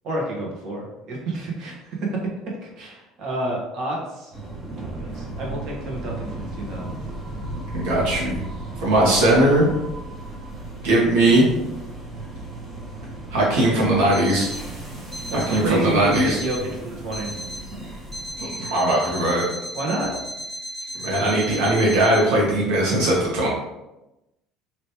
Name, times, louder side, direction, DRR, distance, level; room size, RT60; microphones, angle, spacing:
voice 1, 0.0-2.2 2.5-4.3 4.9-7.0 15.3-17.4 19.7-20.2, right 1 dB, 60° right, -2 dB, 1.1 m, -29 dB
sound 1, 4.3-18.5, right 2 dB, 35° right, 1.0 m, -35 dB
voice 2, 7.7-8.4 8.8-9.7 10.8-11.5 13.3-14.5 15.3-16.4 18.4-19.5 21.0-23.5, right 1 dB, 90° right, -5 dB, 1.4 m, -19 dB
Alarm, 14.1-14.7 15.1-15.7 16.1-16.7 17.1-17.7 18.1-22.3, equal, 10° right, 0.9 m, -35 dB
3.3 x 2.9 x 2.8 m, 0.97 s
cardioid pair, 110°, 0 cm